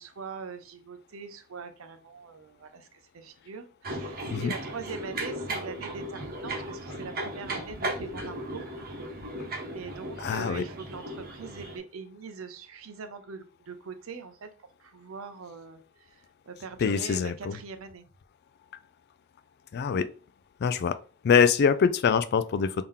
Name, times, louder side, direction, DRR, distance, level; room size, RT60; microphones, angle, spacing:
voice 1, 0.0-8.7 9.7-18.0, right 5 dB, 85° right, 0.6 m, -42 dB
sound 1, 3.8-11.8, right 1 dB, 45° right, 1.0 m, -36 dB
voice 2, 10.2-10.7 16.8-17.6 19.7-20.1 20.6-21.0 21.2-22.8, left 6 dB, 50° left, 0.3 m, -24 dB
3.6 x 2.8 x 3.6 m
head